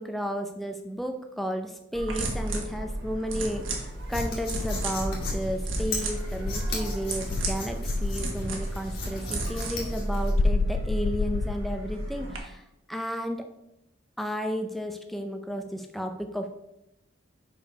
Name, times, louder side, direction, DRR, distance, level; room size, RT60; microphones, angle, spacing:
voice 1, 0.0-12.6 12.9-13.5 14.2-16.5, equal, ahead, 5 dB, 0.5 m, -33 dB
sound 1, 1.9-12.4, right 1 dB, 80° right, 1.4 m, -33 dB
sound 2, 3.3-10.3, left 1 dB, 45° left, 1.9 m, -36 dB
Insect, 4.5-6.8 7.3-8.7 10.3-12.0, left 4 dB, 85° left, 0.4 m, -31 dB
5.1 x 5.0 x 5.4 m, 0.86 s
head